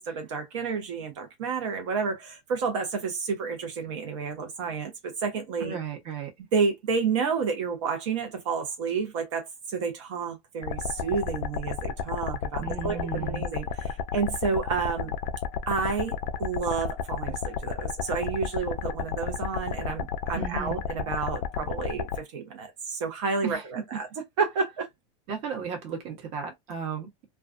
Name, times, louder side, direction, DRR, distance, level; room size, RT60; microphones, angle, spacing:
voice 1, 0.1-5.8 6.5-15.1 15.7-24.1 24.4-24.9, right 5 dB, 85° right, 0.8 m, -30 dB
voice 2, 5.6-6.3 12.6-13.4 20.3-20.8 23.4-23.6 25.3-27.3, right 6 dB, 45° right, 0.9 m, -34 dB
sound 1, 10.6-22.2, left 7 dB, 50° left, 0.4 m, -32 dB
2.3 x 2.2 x 2.4 m
supercardioid pair, 145°, 15 cm